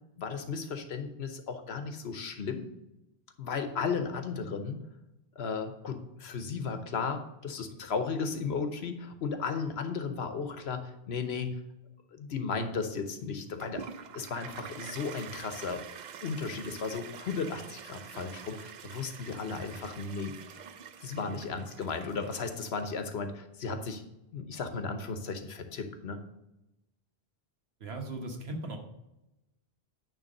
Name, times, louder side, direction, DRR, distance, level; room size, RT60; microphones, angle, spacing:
voice 1, 0.2-2.7 3.4-4.8 5.4-11.5 12.1-13.8 14.1-15.8 16.2-20.3 21.0-24.0 24.3-26.2, left 5 dB, 80° left, 8 dB, 1.2 m, -35 dB
Toilet flush, 13.6-22.8, right 7 dB, 55° right, 0.6 m, -46 dB
voice 2, 27.8-28.8, right 2 dB, 75° right, 3 dB, 1.5 m, -38 dB
9.1 x 3.5 x 6.5 m, 0.92 s
omnidirectional pair, 1.1 m